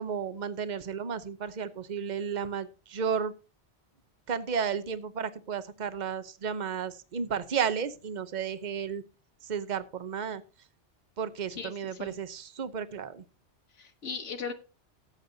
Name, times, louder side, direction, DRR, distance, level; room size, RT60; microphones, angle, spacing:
voice 1, 0.0-3.3 4.3-9.0 9.4-10.4 11.2-13.2, right 7 dB, 45° right, 12 dB, 0.9 m, -33 dB
voice 2, 11.6-12.2 13.7-14.5, left 5 dB, 85° left, 4 dB, 1.4 m, -38 dB
17.5 x 7.9 x 2.7 m, 0.34 s
omnidirectional pair, 1.2 m